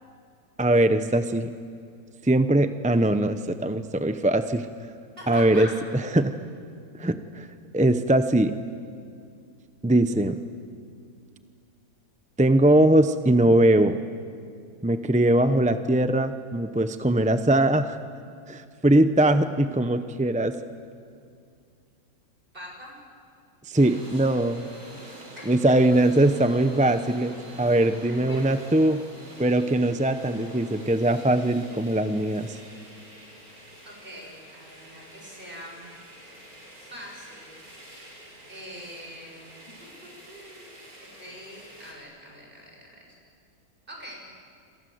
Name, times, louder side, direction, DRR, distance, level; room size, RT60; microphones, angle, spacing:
voice 1, 0.6-1.5 2.2-4.7 5.3-5.7 6.1-6.4 6.9-7.5 7.7-8.5 9.8-10.4 12.4-14.0 14.8-18.0 18.5-20.5 23.6-24.7 25.0-25.1 25.5-29.0 29.4-32.6, right 1 dB, 10° right, 10 dB, 0.5 m, -21 dB
voice 2, 5.2-5.7 22.5-23.0 25.4-25.5 28.3-28.6 33.8-35.9 36.8-37.6 38.5-40.8 41.2-43.1 43.9-44.2, equal, 35° right, -1 dB, 7.2 m, -43 dB
sound 1, 23.7-41.9, equal, 75° right, 5.7 m, -47 dB
28.0 x 27.0 x 8.0 m, 2.3 s
omnidirectional pair, 1.6 m